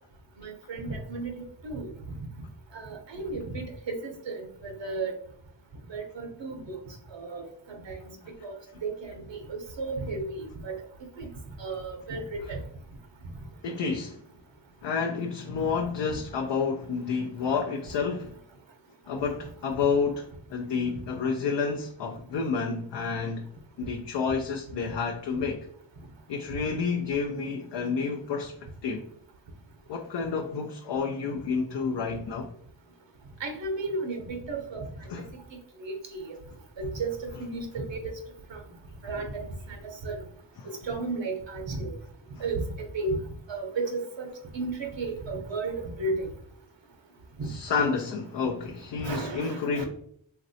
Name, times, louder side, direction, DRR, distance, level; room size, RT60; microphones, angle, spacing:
voice 1, 0.4-1.9 2.7-5.1 5.9-6.8 7.1-8.0 8.4-10.7 11.2-11.3 11.6-12.6 33.4-34.9 35.8-36.3 36.8-38.1 38.5-38.6 39.0-39.8 40.0-40.2 40.8-41.9 42.4-43.2 43.5-46.3 47.4-47.9 49.0-49.8, right 3 dB, 70° right, 0.8 m, -34 dB
voice 2, 13.6-14.2 14.8-18.3 19.1-23.5 23.8-25.7 26.3-28.5 28.8-29.0 29.9-32.5 35.1-35.3 37.3-37.5 40.6-40.8 42.4-42.5 47.4-49.8, left 5 dB, 65° left, 0.5 m, -30 dB
3.0 x 2.6 x 2.6 m
cardioid pair, 45°, 46 cm